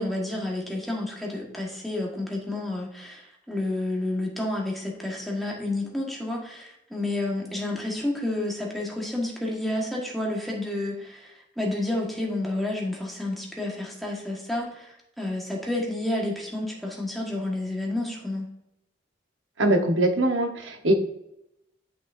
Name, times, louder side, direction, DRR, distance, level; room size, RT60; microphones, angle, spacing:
voice 1, 0.0-18.5, left 1 dB, ahead, -3 dB, 1.5 m, -30 dB
voice 2, 19.6-20.9, right 1 dB, 85° right, 4 dB, 1.1 m, -22 dB
8.2 x 6.2 x 2.6 m, 0.80 s
head